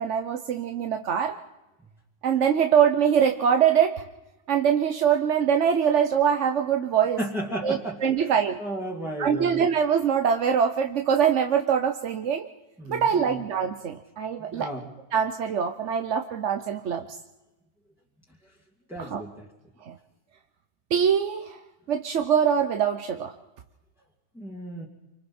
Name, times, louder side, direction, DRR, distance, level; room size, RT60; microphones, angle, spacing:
voice 1, 0.0-1.3 2.2-4.0 4.5-7.2 7.6-8.6 9.2-12.4 12.9-14.7 15.1-17.0 19.0-19.2 19.9-20.0 20.9-21.6 21.9-23.3, right 8 dB, 85° right, 5 dB, 1.2 m, -23 dB
voice 2, 7.2-8.3 8.6-9.6 12.8-13.4 14.4-14.9 18.9-19.5 24.3-24.9, right 1 dB, ahead, -3 dB, 2.5 m, -34 dB
28.5 x 25.5 x 4.4 m, 1.0 s
omnidirectional pair, 1.2 m